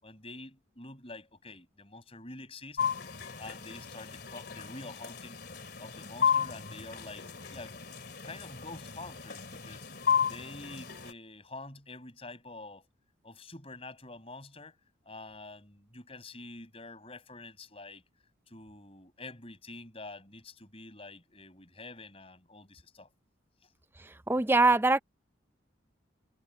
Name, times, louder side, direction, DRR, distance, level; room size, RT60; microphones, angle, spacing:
voice 1, 0.0-2.8 3.4-5.4 5.8-7.3 7.5-7.8 8.2-12.9 13.2-14.8 15.0-18.0 18.5-23.1 23.6-23.7, left 2 dB, 30° left, 6.7 m, -47 dB
sound 1, 2.8-11.1, left 7 dB, 55° left, 3.0 m, -34 dB
voice 2, 24.0-25.0, right 3 dB, 10° right, 0.4 m, -24 dB
head